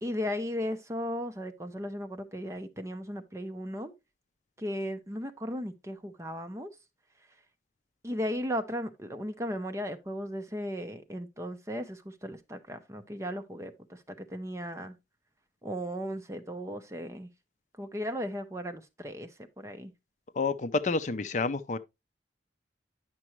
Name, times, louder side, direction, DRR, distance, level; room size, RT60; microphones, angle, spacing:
voice 1, 0.0-3.9 4.6-6.7 8.0-14.0 14.3-14.9 15.6-17.3 17.8-19.3 19.6-19.9, equal, 15° right, 0.7 m, -36 dB
voice 2, 20.4-21.8, left 3 dB, 40° left, 0.5 m, -29 dB
9.8 x 6.1 x 3.1 m
head